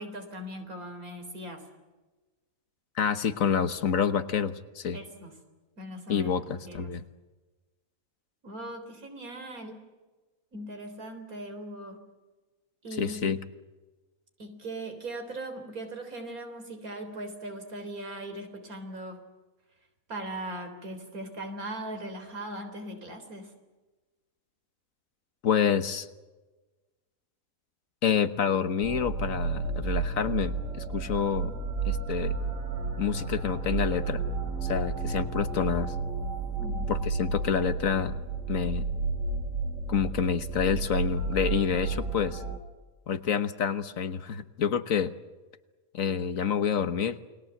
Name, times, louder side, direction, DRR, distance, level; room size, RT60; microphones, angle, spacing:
voice 1, 0.0-1.7 4.9-5.4 5.8-6.3 6.7-6.9 8.4-9.9 10.5-12.1 12.8-13.3 14.4-19.2 20.1-23.5 36.6-36.9, right 1 dB, 75° right, 6 dB, 4.2 m, -39 dB
voice 2, 3.0-5.0 6.1-7.0 13.0-13.4 25.4-26.1 28.0-31.5 31.8-32.3 33.0-34.2 34.6-35.9 36.9-38.2 38.5-38.9 39.9-42.4 43.1-45.1 45.9-47.2, left 7 dB, 65° left, 11 dB, 1.5 m, -28 dB
sound 1, 28.8-42.6, right 4 dB, 60° right, 3.7 m, -32 dB
29.0 x 21.0 x 7.9 m, 1.2 s
omnidirectional pair, 1.5 m